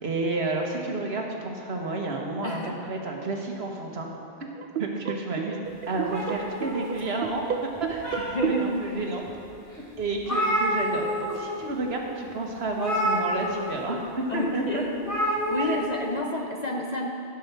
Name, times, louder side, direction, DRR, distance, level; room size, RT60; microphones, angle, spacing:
voice 1, 0.0-4.1 4.4-4.5 4.8-7.4 7.9-8.1 8.5-9.2 10.0-14.8 15.6-15.9, right 2 dB, 80° right, 1 dB, 1.6 m, -30 dB
voice 2, 2.4-2.7 8.2-8.8 14.3-14.9 15.3-17.1, left 1 dB, 45° left, 1 dB, 0.8 m, -30 dB
sound 1, 4.6-9.1, right 9 dB, 60° right, 0.7 m, -33 dB
sound 2, 6.1-7.3 7.7-8.6 9.2-9.3 9.7-9.8 10.0-11.4 11.6-11.8 12.7-13.8 15.0-15.8, equal, 15° left, 3.0 m, -28 dB
15.5 x 5.5 x 6.7 m, 2.5 s
omnidirectional pair, 1.0 m